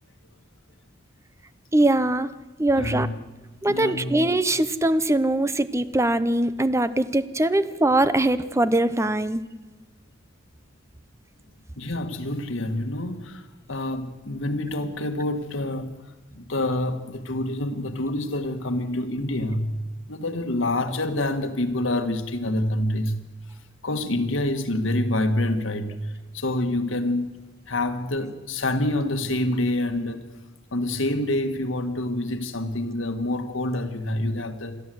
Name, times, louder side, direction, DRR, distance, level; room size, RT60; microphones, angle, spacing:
voice 1, 1.7-2.3 2.6-3.1 3.6-9.4, right 1 dB, 15° right, 13 dB, 0.7 m, -22 dB
voice 2, 2.8-3.2 3.6-4.3 11.8-15.9 16.3-19.7 20.1-23.2 23.8-27.4 27.7-30.2 30.7-34.8, left 1 dB, 90° left, 7 dB, 1.8 m, -27 dB
27.5 x 12.5 x 7.8 m, 1.2 s
head